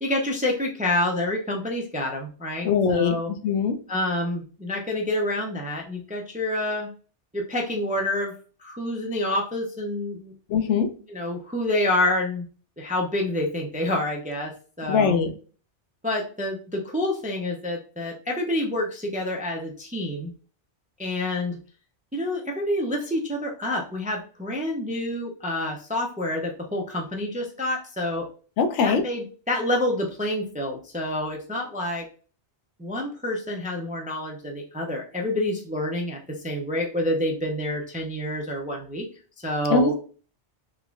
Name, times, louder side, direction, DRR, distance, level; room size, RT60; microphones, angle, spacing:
voice 1, 0.0-3.3 3.9-6.9 7.3-8.3 8.6-10.3 11.1-12.5 12.8-14.5 14.8-15.2 16.0-20.3 21.0-21.6 22.1-28.3 28.8-32.1 32.8-39.1 39.4-39.9, left 1 dB, 15° right, 0 dB, 0.3 m, -28 dB
voice 2, 2.6-3.2 3.4-3.8 10.5-10.9 14.9-15.3 28.6-29.0 39.7-40.0, left 5 dB, 85° left, 7 dB, 0.9 m, -21 dB
3.5 x 3.0 x 2.4 m, 0.39 s
omnidirectional pair, 1.2 m